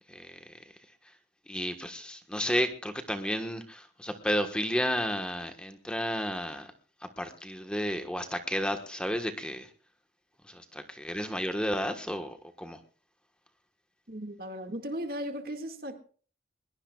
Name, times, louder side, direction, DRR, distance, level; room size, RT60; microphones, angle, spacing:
voice 1, 0.1-0.6 1.5-6.7 7.0-9.7 10.5-12.8, equal, 5° left, 1.3 m, -32 dB
voice 2, 14.1-16.0, equal, 55° right, 2.0 m, -36 dB
21.5 x 21.0 x 2.4 m
head